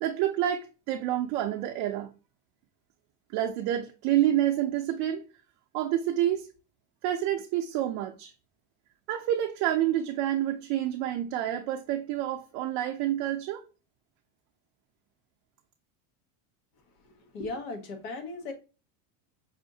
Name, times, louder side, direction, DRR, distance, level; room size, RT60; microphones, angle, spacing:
voice 1, 0.0-2.1 3.3-5.2 5.7-6.5 7.0-8.3 9.1-13.6, right 12 dB, 50° right, 0.4 m, -28 dB
voice 2, 17.0-18.5, left 3 dB, 80° left, 1.2 m, -37 dB
5.5 x 2.5 x 2.6 m
cardioid pair, 155°, 44 cm